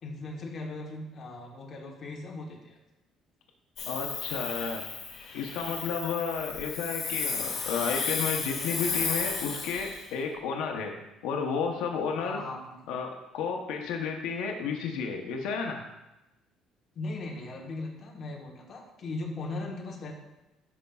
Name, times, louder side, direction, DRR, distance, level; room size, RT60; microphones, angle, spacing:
voice 1, 0.0-2.8 12.2-12.9 16.9-20.1, left 2 dB, 35° left, 0 dB, 1.1 m, -38 dB
Hiss, 3.8-10.1, left 5 dB, 55° left, 1.6 m, -33 dB
voice 2, 3.9-4.8 5.3-11.0 11.2-12.4 12.9-15.8, left 5 dB, 90° left, 3 dB, 0.7 m, -32 dB
11.0 x 5.1 x 2.3 m, 0.98 s
cardioid pair, 155°, 0 cm